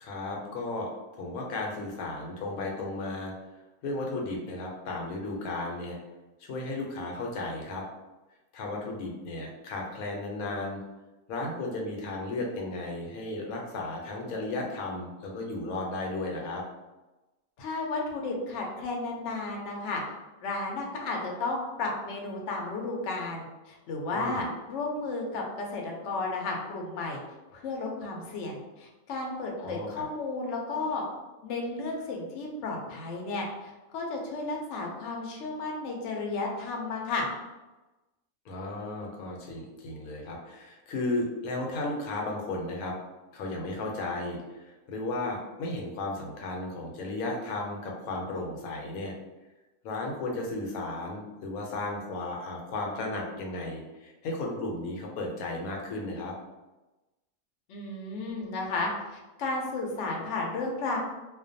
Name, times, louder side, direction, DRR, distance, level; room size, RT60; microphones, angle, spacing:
voice 1, 0.0-3.3 3.8-6.0 6.4-7.9 8.5-10.8 11.3-16.6 24.1-24.4 29.6-30.0 38.5-42.9 43.3-49.1 49.8-56.3, left 2 dB, 90° left, 0 dB, 1.1 m, -34 dB
voice 2, 17.6-20.0 20.4-27.2 27.5-31.0 31.4-37.3 57.7-61.0, left 3 dB, 65° left, 0 dB, 0.8 m, -33 dB
2.4 x 2.2 x 2.5 m, 1.1 s
omnidirectional pair, 1.5 m